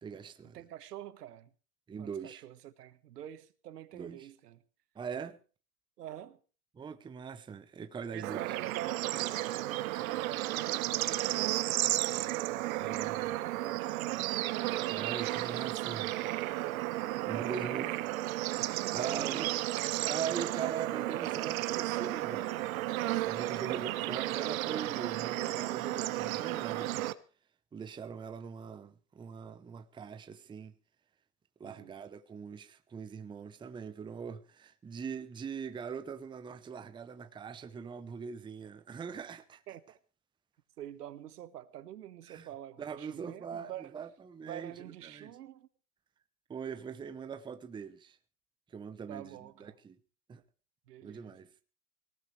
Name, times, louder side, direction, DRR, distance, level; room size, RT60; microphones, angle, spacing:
voice 1, 0.0-0.6 1.9-2.4 3.9-4.3 4.9-5.4 6.7-8.4 12.7-13.3 14.8-16.2 17.2-18.0 18.9-19.5 20.0-22.7 23.2-27.1 27.7-30.7 31.6-39.6 42.3-42.5 42.8-45.3 46.5-48.2 48.7-50.0 50.3-50.4 51.0-51.5, right 6 dB, 10° right, 0.8 m, -42 dB
voice 2, 0.5-1.5 2.0-4.6 6.0-6.4 8.1-14.1 14.9-15.7 17.1-18.2 18.8-19.7 20.4-20.5 23.5-23.7 31.6-31.9 39.7-40.0 40.8-44.0 44.4-45.7 49.1-49.7 50.9-51.4, right 12 dB, 75° right, 1.5 m, -47 dB
Bird / Insect / Frog, 8.2-27.1, right 16 dB, 60° right, 1.2 m, -33 dB
19.0 x 18.5 x 3.3 m
hypercardioid pair, 125°, 47 cm